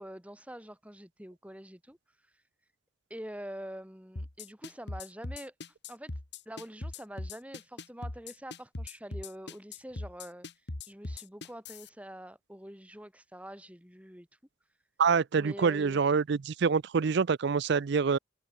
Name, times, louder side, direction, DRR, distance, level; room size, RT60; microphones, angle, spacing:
voice 1, 0.0-2.0 3.1-5.5 5.9-6.1 6.5-10.5 10.9-14.3 15.3-16.0, equal, 5° right, 3.5 m, -45 dB
sound 1, 4.2-11.9, left 2 dB, 55° left, 1.8 m, -39 dB
voice 2, 15.0-18.2, right 5 dB, 55° right, 0.4 m, -26 dB
head